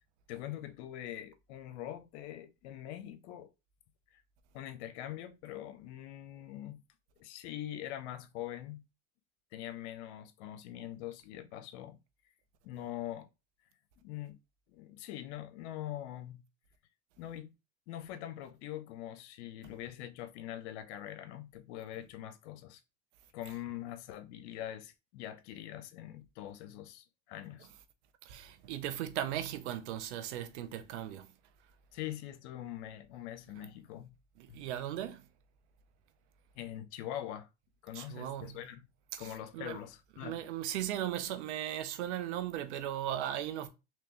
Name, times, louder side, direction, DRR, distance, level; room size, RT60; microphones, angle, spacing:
voice 1, 0.3-3.5 4.1-4.2 4.5-6.8 7.2-8.8 9.5-12.0 12.6-13.3 14.0-14.4 14.7-16.4 17.2-17.5 17.9-22.8 23.3-27.7 31.9-34.1 36.6-37.5 37.8-38.8 39.2-40.4, left 12 dB, 75° left, 0.7 m, -43 dB
voice 2, 28.2-31.3 34.4-35.3 37.9-38.7 39.1-39.8 40.2-43.7, right 12 dB, 85° right, 0.7 m, -37 dB
3.4 x 3.0 x 2.9 m
supercardioid pair, 90°, 34 cm